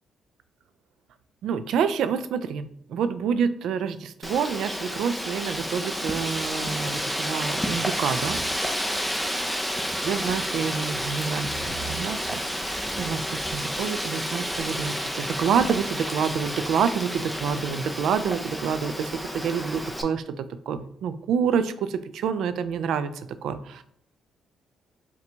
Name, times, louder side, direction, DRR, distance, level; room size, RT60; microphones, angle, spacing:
voice 1, 1.4-8.4 10.0-23.1 23.4-23.8, right 7 dB, 75° right, 11 dB, 0.3 m, -28 dB
Wind, 4.2-20.0, equal, ahead, 0.5 m, -30 dB
4.4 x 2.2 x 3.9 m, 0.68 s
cardioid pair, 90°, 0 cm